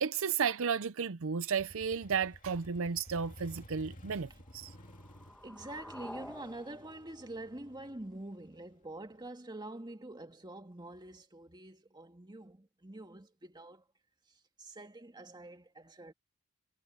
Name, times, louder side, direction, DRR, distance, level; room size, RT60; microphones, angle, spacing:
voice 1, 0.0-4.8, right 6 dB, 60° right, 0.6 m, -33 dB
Motorcycle, 1.6-9.2, equal, 35° left, 2.4 m, -54 dB
sound 1, 4.4-8.4, left 1 dB, 5° left, 1.8 m, -51 dB
voice 2, 5.4-13.8 14.3-16.1, right 1 dB, 20° right, 2.0 m, -46 dB
head